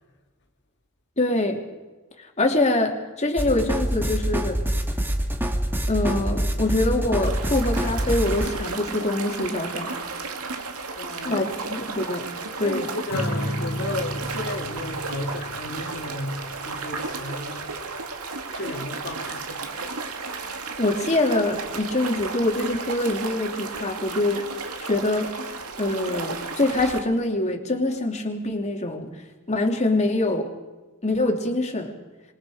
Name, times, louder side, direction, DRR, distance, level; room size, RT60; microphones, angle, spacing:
voice 1, 1.2-1.6 2.4-4.6 5.9-10.0 11.2-11.4 11.7-12.9 20.8-24.5 24.8-25.3 25.8-29.1 29.5-30.5 31.0-31.9, left 2 dB, 30° left, 2.8 m, -24 dB
sound 1, 3.4-8.5, equal, 10° right, 1.8 m, -25 dB
sound 2, 7.2-27.0, right 4 dB, 80° right, 2.2 m, -33 dB
voice 2, 11.0-11.7 12.6-17.7 18.5-19.7, left 2 dB, 55° left, 2.2 m, -34 dB
Acoustic guitar / Strum, 13.1-16.4, equal, 70° left, 2.7 m, -32 dB
26.5 x 21.5 x 5.0 m
head